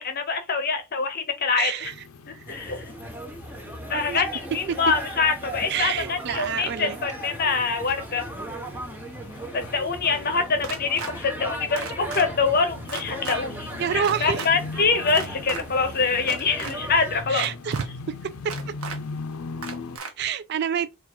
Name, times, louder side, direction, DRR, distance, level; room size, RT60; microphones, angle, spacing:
voice 1, 0.0-1.7 2.3-2.9 3.9-8.2 9.5-17.5, left 4 dB, 45° left, 0.8 m, -25 dB
voice 2, 1.6-2.0 2.3-2.5 4.1-4.2 4.7-4.8 5.7-7.0 13.8-14.4 17.3-17.9 18.2-18.3 18.7-18.8 20.2-20.9, right 8 dB, 50° right, 0.3 m, -27 dB
sound 1, 1.8-20.0, left 3 dB, 75° left, 0.5 m, -41 dB
sound 2, 2.5-17.2, right 1 dB, 10° right, 0.8 m, -37 dB
sound 3, 10.6-11.1 11.8-12.2 12.9-13.4 14.0-14.5 15.1-15.6 16.2-16.7 17.4-17.9 18.5-19.0 19.6-20.1, right 5 dB, 75° right, 0.9 m, -35 dB
3.7 x 2.5 x 4.3 m
head